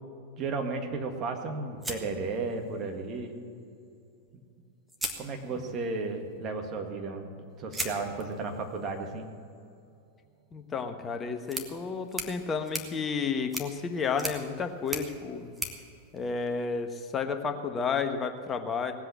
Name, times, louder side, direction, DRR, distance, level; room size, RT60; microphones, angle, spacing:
voice 1, 0.4-3.4 4.3-4.4 5.2-7.3 7.6-9.3, right 3 dB, 30° right, 3 dB, 1.8 m, -34 dB
sound 1, 1.8-2.9 4.3-4.4 4.9-5.9 7.7-16.9, right 1 dB, 5° right, 1.5 m, -41 dB
voice 2, 10.5-15.5 16.1-18.9, left 5 dB, 20° left, 7 dB, 1.1 m, -31 dB
18.5 x 8.1 x 7.6 m, 2.5 s
figure-of-eight pair, 90°, 0 cm